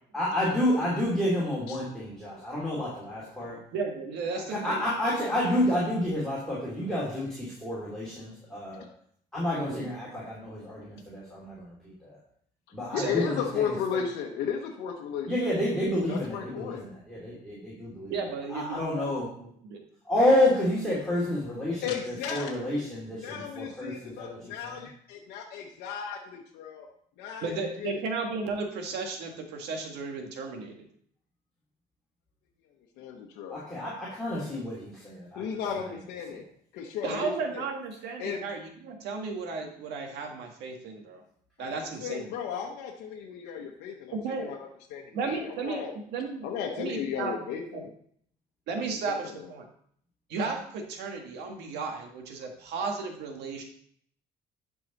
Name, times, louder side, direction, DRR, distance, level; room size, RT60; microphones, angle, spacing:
voice 1, 0.1-3.6 4.5-8.9 9.3-11.7 12.0-12.2 12.7-14.0 15.3-18.1 18.5-19.3 20.0-24.9 33.5-35.4 36.3-36.4, left 1 dB, 5° left, -8 dB, 3.1 m, -29 dB
voice 2, 3.7-4.8 9.7-9.9 13.0-13.2 18.1-19.1 19.3-19.8 27.4-30.9 37.0-41.2 41.6-42.2 44.1-44.5 45.1-45.8 46.1-46.5 46.7-47.3 47.7-47.8 48.7-49.7 50.3-53.6, right 4 dB, 85° right, 3 dB, 1.7 m, -34 dB
voice 3, 12.9-15.5 16.1-16.8 21.1-21.2 21.8-22.8 23.1-26.9 27.2-28.0 33.0-33.6 35.4-36.4 36.7-37.7 38.2-38.4 41.6-45.9 46.4-47.9 49.1-49.5, left 7 dB, 90° left, 0 dB, 1.0 m, -35 dB
11.0 x 4.8 x 4.0 m, 0.64 s
cardioid pair, 110°, 17 cm